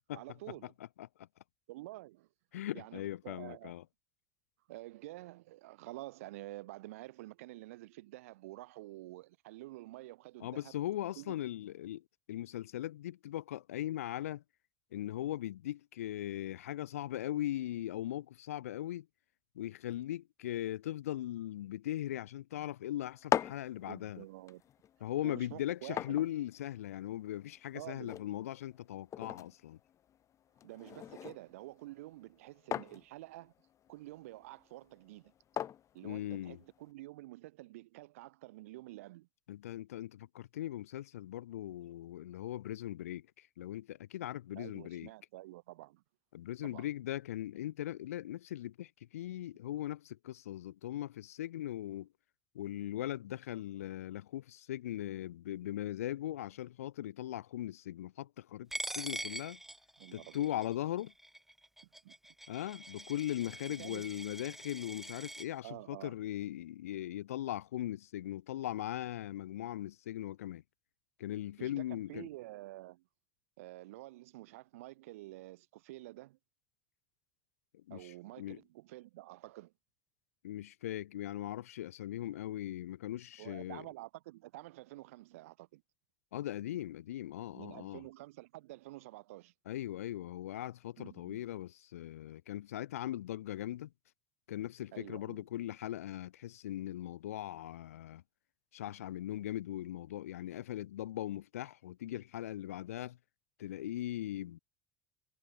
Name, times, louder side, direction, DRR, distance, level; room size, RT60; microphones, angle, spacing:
voice 1, 0.1-0.7 1.7-2.3 2.7-3.7 4.7-10.7 11.2-11.4 23.8-24.6 25.2-26.2 27.7-28.2 30.6-33.5 33.9-35.3 35.9-39.3 44.5-46.0 46.6-46.9 60.0-60.5 62.0-62.2 63.8-64.0 65.6-66.2 71.6-73.0 73.6-76.4 77.9-79.7 83.4-85.8 87.5-89.5 91.0-91.4 94.9-95.4, right 18 dB, 70° right, 3.1 m, -49 dB
voice 2, 2.5-3.8 10.4-12.0 12.3-14.4 14.9-19.1 19.6-24.2 25.0-29.8 36.0-36.6 39.5-45.1 46.3-52.1 52.5-58.7 58.9-59.6 60.1-61.1 62.5-70.6 71.2-72.3 77.9-78.6 80.4-83.8 86.3-88.0 89.7-93.9 94.5-98.2 98.7-103.2 103.6-104.6, left 13 dB, 75° left, 0.4 m, -39 dB
sound 1, 23.0-36.9, left 10 dB, 40° left, 1.1 m, -42 dB
Coin (dropping), 58.7-65.5, right 1 dB, 5° right, 1.7 m, -44 dB
figure-of-eight pair, 65°, 8 cm